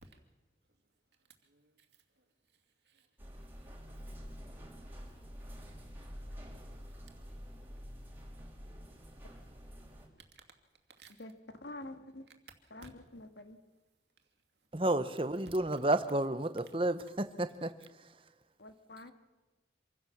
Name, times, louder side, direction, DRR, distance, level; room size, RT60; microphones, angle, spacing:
voice 1, 1.2-3.1 3.5-4.1 5.4-5.5 6.8-7.2 10.3-10.4 10.9-11.2 14.2-14.3, right 5 dB, 80° right, 5 dB, 2.7 m, -63 dB
sound 1, 3.2-10.1, equal, 10° right, 3.4 m, -48 dB
voice 2, 11.2-12.3 12.7-13.6 18.6-19.1, left 1 dB, 85° left, 8 dB, 1.8 m, -47 dB
voice 3, 14.7-18.2, right 1 dB, 30° right, 11 dB, 0.9 m, -32 dB
26.5 x 16.5 x 7.4 m, 1.1 s
head